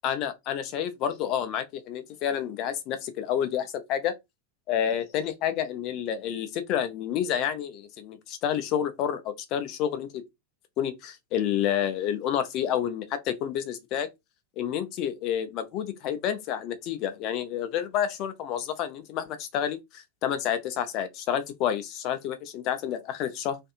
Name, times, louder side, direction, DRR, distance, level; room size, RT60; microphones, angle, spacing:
voice 1, 0.0-4.2 4.7-10.2 10.8-14.1 14.6-23.6, left 9 dB, 40° left, 0.5 m, -29 dB
2.6 x 2.5 x 2.4 m
figure-of-eight pair, 90°, 0 cm